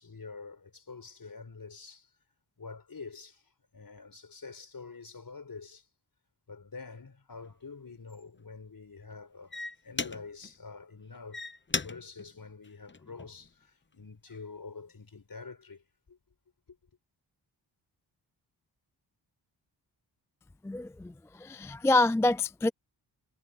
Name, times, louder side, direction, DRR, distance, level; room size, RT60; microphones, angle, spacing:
voice 1, 0.0-2.1 2.6-3.4 3.7-5.9 6.5-11.5 11.8-16.2 16.7-16.8, left 4 dB, 50° left, 5.4 m, -46 dB
sound 1, 7.3-7.5 8.1-8.4 9.1-9.2 9.5-10.5 11.1-13.5 14.0-14.4, left 3 dB, 25° left, 1.1 m, -37 dB
voice 2, 20.6-22.7, left 2 dB, 5° left, 0.3 m, -27 dB
cardioid pair, 50°, 45 cm